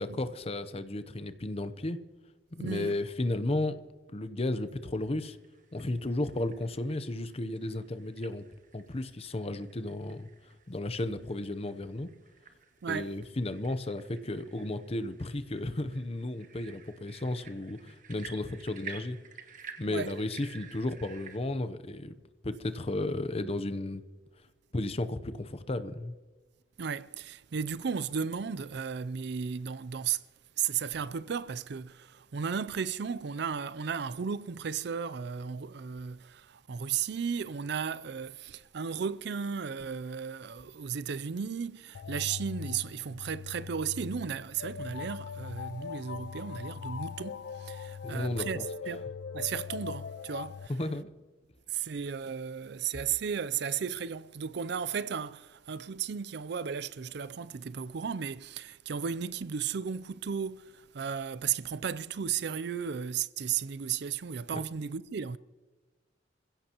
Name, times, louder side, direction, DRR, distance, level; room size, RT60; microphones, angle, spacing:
voice 1, 0.0-2.0 2.6-3.8 4.1-5.4 5.7-8.4 8.7-10.3 10.7-12.1 12.9-19.2 19.8-22.1 22.4-24.0 24.7-26.1 48.0-48.6 50.7-51.1 64.5-64.6, left 2 dB, 35° left, 0.8 m, -34 dB
voice 2, 2.6-3.0 12.8-13.2 19.9-20.1 26.8-30.2 30.6-49.0 49.3-50.7 51.7-65.4, right 7 dB, 65° right, 0.5 m, -35 dB
sound 1, 4.9-21.4, right 6 dB, 45° right, 1.3 m, -52 dB
sound 2, 41.9-50.7, left 6 dB, 85° left, 0.5 m, -41 dB
27.0 x 16.0 x 3.0 m
head